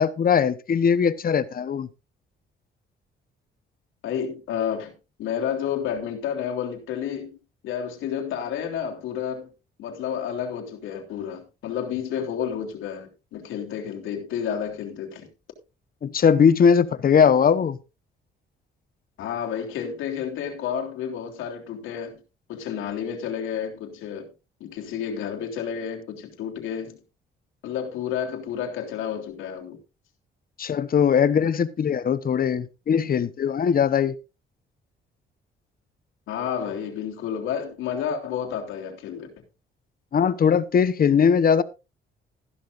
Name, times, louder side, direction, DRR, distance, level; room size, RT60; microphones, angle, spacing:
voice 1, 0.0-1.9 16.0-17.8 30.6-34.1 40.1-41.6, left 7 dB, 45° left, 1.1 m, -20 dB
voice 2, 4.0-4.9 5.2-7.3 7.6-9.5 9.8-15.3 19.2-22.2 22.5-24.3 24.6-27.0 27.6-29.8 36.3-39.3, left 8 dB, 85° left, 3.4 m, -30 dB
14.5 x 12.5 x 2.6 m
cardioid pair, 90°, 20 cm